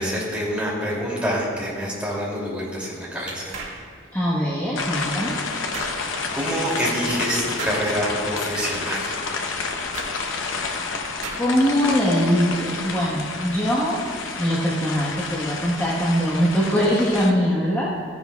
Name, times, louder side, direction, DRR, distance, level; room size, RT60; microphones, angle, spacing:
voice 1, 0.0-3.6 6.0-9.2, equal, 5° right, -6 dB, 2.7 m, -27 dB
sound 1, 3.5-3.8 5.7-6.0 7.6-7.9 9.9-10.1 11.2-11.6, right 3 dB, 80° right, 1.9 m, -34 dB
voice 2, 4.1-5.4 11.4-14.0 14.4-17.9, equal, 10° left, -9 dB, 1.2 m, -22 dB
sound 2, 4.8-17.3, left 4 dB, 85° left, 0.8 m, -30 dB
14.5 x 10.5 x 2.3 m, 2.2 s
head